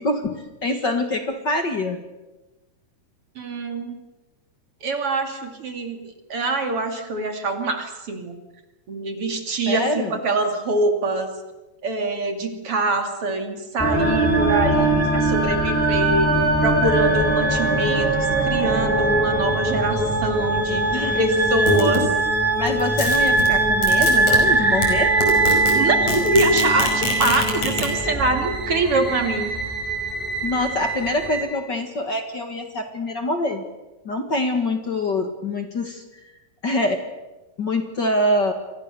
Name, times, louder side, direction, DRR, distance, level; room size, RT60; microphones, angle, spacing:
voice 1, 0.0-2.0 9.7-10.1 20.9-21.2 22.6-25.1 30.4-33.6 34.0-36.0 36.6-37.0 37.6-38.5, left 1 dB, 40° left, 6 dB, 2.2 m, -25 dB
voice 2, 3.4-4.0 4.8-8.4 8.9-11.3 11.8-16.3 16.6-20.9 21.1-22.1 25.7-29.6, right 2 dB, 50° right, 5 dB, 3.4 m, -24 dB
sound 1, 13.8-31.4, right 2 dB, 5° left, 5.9 m, -21 dB
sound 2, 21.6-22.1 22.7-24.4 24.8-24.9 25.2-25.7 26.0-27.9, left 1 dB, 70° left, 7.0 m, -24 dB
29.0 x 24.0 x 6.8 m, 1.1 s
omnidirectional pair, 3.4 m